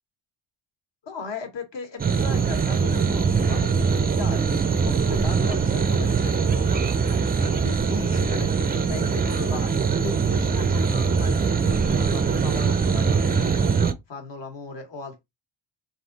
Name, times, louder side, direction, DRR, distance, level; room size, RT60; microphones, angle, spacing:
voice 1, 1.0-6.9 7.4-13.6 14.1-15.2, left 4 dB, 60° left, 1.5 m, -37 dB
sound 1, 2.0-13.9, right 5 dB, 20° right, 0.3 m, -22 dB
3.6 x 2.7 x 3.9 m
cardioid pair, 130°, 49 cm